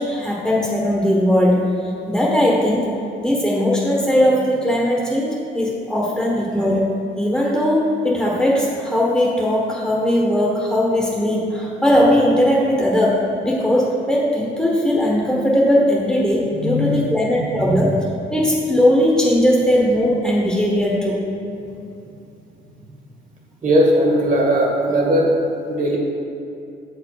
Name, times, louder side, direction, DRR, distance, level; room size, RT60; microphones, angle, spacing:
voice 1, 0.0-1.6 2.1-2.9 3.2-6.8 7.2-17.9 18.3-21.2, equal, 5° left, -4 dB, 1.1 m, -18 dB
voice 2, 16.5-17.1 17.5-17.8 23.6-26.0, equal, 40° right, -1 dB, 1.7 m, -19 dB
7.4 x 4.7 x 4.7 m, 2.7 s
cardioid pair, 90°, 20 cm